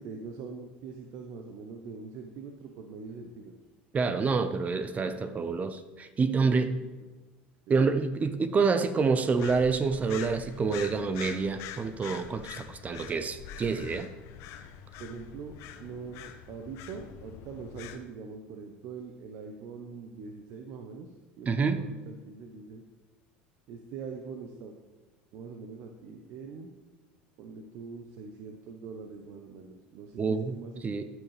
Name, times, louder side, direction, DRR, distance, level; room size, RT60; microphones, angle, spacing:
voice 1, 0.0-3.5 4.9-5.4 6.4-6.9 7.7-7.9 15.0-22.8 23.7-24.7 25.3-26.7 27.4-31.0, right 5 dB, 60° right, 4 dB, 0.9 m, -43 dB
voice 2, 3.9-6.7 7.7-14.1 21.5-21.8 30.2-30.5 30.8-31.0, right 4 dB, 30° right, 11 dB, 0.6 m, -27 dB
sound 1, 9.3-18.0, left 9 dB, 65° left, 0.8 m, -45 dB
14.0 x 6.4 x 3.3 m, 1.3 s
hypercardioid pair, 90°, 5 cm